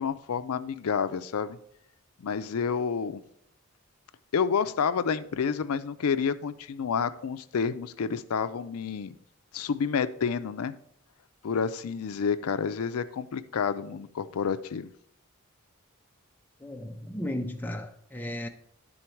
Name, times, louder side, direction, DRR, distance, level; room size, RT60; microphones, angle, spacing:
voice 1, 0.0-1.6 2.2-3.2 4.3-9.1 9.5-10.8 11.4-14.9, left 6 dB, 80° left, 0.4 m, -29 dB
voice 2, 16.6-18.5, left 1 dB, 10° left, 0.4 m, -35 dB
11.0 x 3.9 x 4.5 m
head